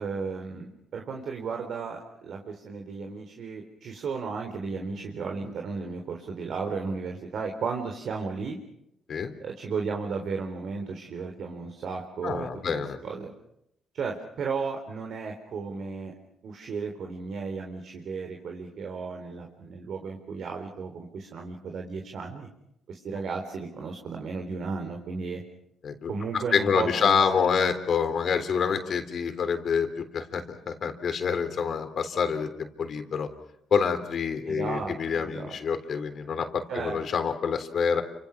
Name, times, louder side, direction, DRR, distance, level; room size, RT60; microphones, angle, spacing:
voice 1, 0.0-8.6 9.4-12.5 12.7-13.3 13.9-16.1 16.4-22.5 22.9-25.4 26.1-27.7 34.5-35.6 36.7-37.0, right 5 dB, 65° right, 3 dB, 3.8 m, -34 dB
voice 2, 12.2-13.0 25.8-33.3 33.7-38.0, left 6 dB, 55° left, 8 dB, 3.5 m, -27 dB
29.5 x 26.0 x 6.1 m, 0.81 s
cardioid pair, 90°, 0 cm